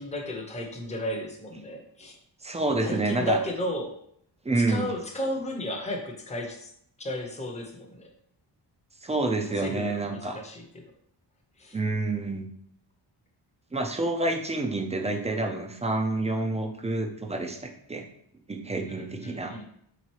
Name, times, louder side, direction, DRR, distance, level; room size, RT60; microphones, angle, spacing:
voice 1, 0.0-2.2 2.7-4.0 4.6-6.7 7.0-8.1 9.4-10.9 11.6-11.8 18.9-19.7, left 1 dB, 15° left, 2 dB, 0.7 m, -34 dB
voice 2, 2.4-3.4 4.4-4.9 9.0-10.4 11.7-12.5 13.7-18.0 18.5-19.5, right 2 dB, 15° right, 4 dB, 0.4 m, -28 dB
3.9 x 3.0 x 4.5 m, 0.68 s
wide cardioid pair, 140°, 45 cm